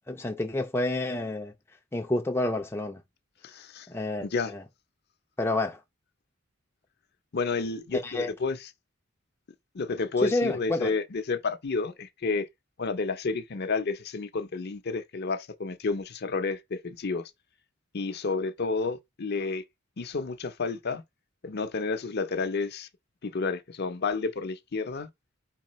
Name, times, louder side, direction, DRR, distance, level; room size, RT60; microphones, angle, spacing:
voice 1, 0.1-1.5 1.9-3.0 3.9-4.6 5.4-5.8 7.9-8.3 10.2-10.9, left 2 dB, 10° left, 0.5 m, -29 dB
voice 2, 3.4-3.9 4.2-4.5 7.3-8.6 9.7-12.5 12.8-17.2 17.9-19.6 20.0-21.0 21.4-22.9 23.2-25.1, left 4 dB, 50° left, 0.6 m, -30 dB
4.7 x 3.6 x 3.1 m
head